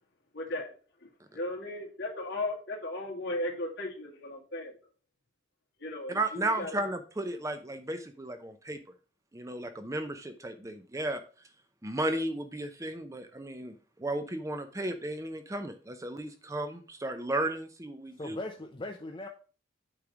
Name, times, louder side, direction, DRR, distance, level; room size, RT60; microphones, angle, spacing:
voice 1, 0.3-0.7 1.0-1.1 1.3-4.8 5.8-6.8, left 1 dB, 60° left, 2.3 m, -36 dB
voice 2, 6.1-8.8 9.3-11.2 11.8-18.4, right 1 dB, 15° right, 0.6 m, -34 dB
voice 3, 18.1-19.3, left 2 dB, 25° left, 0.6 m, -39 dB
8.5 x 3.2 x 6.1 m
head